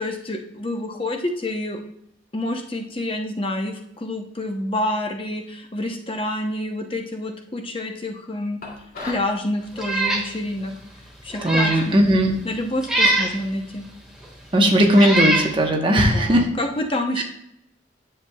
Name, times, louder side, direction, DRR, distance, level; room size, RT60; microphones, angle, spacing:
voice 1, 0.0-1.8 2.3-8.6 9.0-10.7 11.2-12.0 12.4-13.9 15.9-17.2, left 1 dB, 30° left, 3 dB, 0.8 m, -28 dB
sound 1, 8.6-9.4, left 2 dB, 50° left, 2.7 m, -35 dB
Meow, 9.8-10.3 10.7-10.8 11.3-11.9 12.8-13.4 14.2-14.3 14.9-15.5, right 2 dB, 5° right, 1.6 m, -22 dB
voice 2, 11.4-12.3 14.5-16.4 17.2-17.3, equal, 25° right, 2 dB, 1.0 m, -17 dB
10.0 x 7.3 x 2.3 m, 0.74 s
head